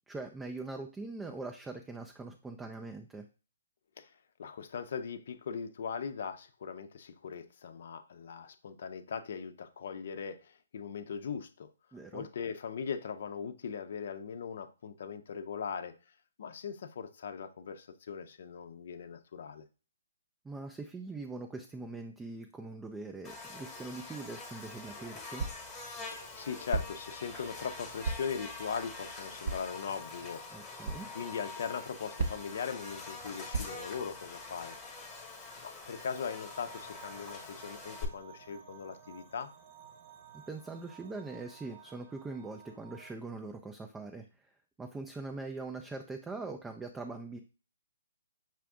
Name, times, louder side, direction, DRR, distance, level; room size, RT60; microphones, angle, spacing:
voice 1, 0.1-3.3 11.9-12.2 20.4-25.5 30.5-31.1 40.3-44.5 44.8-47.4, right 3 dB, 10° right, 4 dB, 0.4 m, -42 dB
voice 2, 4.0-11.7 12.1-15.9 16.4-19.6 26.1-34.8 35.6-39.5, left 6 dB, 55° left, 10 dB, 0.6 m, -40 dB
Buzz, 23.2-38.0, left 3 dB, 15° left, 1.1 m, -45 dB
sound 1, 25.4-25.8 26.7-27.1 28.0-28.4 29.4-29.8 30.8-31.1 32.2-32.6 33.5-34.0, right 3 dB, 55° right, 0.7 m, -35 dB
sound 2, 36.5-43.1, right 8 dB, 30° right, 0.9 m, -55 dB
5.8 x 2.5 x 3.5 m, 0.34 s
figure-of-eight pair, 135°, 0 cm